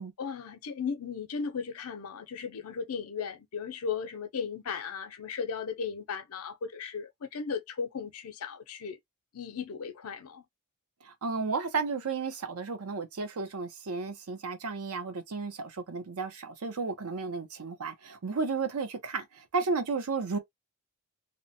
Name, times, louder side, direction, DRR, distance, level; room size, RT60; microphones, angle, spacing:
voice 1, 0.2-9.0 9.3-10.4, left 6 dB, 80° left, 0.5 m, -36 dB
voice 2, 11.0-20.4, right 4 dB, 85° right, 0.7 m, -33 dB
2.9 x 2.1 x 2.6 m
head